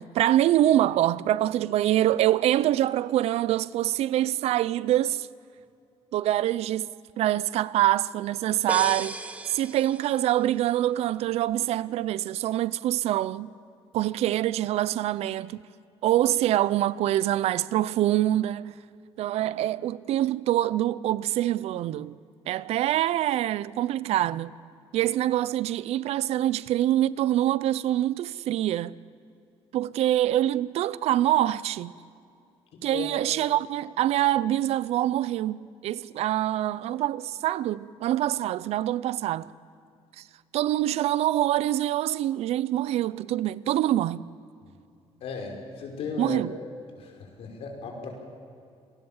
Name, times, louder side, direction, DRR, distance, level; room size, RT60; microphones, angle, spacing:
voice 1, 0.0-5.3 6.1-9.2 9.5-13.5 13.9-15.6 16.0-18.8 19.2-22.2 22.5-24.5 24.9-29.0 29.7-31.9 32.8-39.5 40.2-40.3 40.5-44.3 46.2-46.6, right 13 dB, 70° right, 0.6 m, -25 dB
sound 1, 8.7-10.5, right 2 dB, 15° right, 1.0 m, -35 dB
voice 2, 32.7-33.1 45.2-46.4 47.0-47.1 47.4-48.1, left 5 dB, 65° left, 5.3 m, -35 dB
27.5 x 19.0 x 7.3 m
cardioid pair, 160°, 11 cm